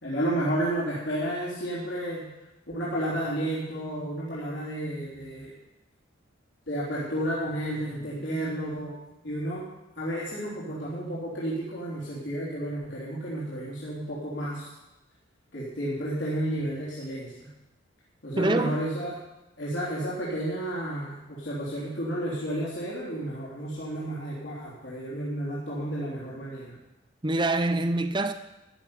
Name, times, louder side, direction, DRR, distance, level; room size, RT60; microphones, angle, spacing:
voice 1, 0.0-2.3 2.7-5.5 6.7-8.9 9.2-9.6 10.0-14.7 15.5-17.5 18.2-19.2 19.6-26.8, right 1 dB, 60° left, -7 dB, 3.5 m, -31 dB
voice 2, 18.4-18.8 27.2-28.3, right 2 dB, 25° right, 9 dB, 0.7 m, -25 dB
14.0 x 6.2 x 9.8 m, 0.97 s
head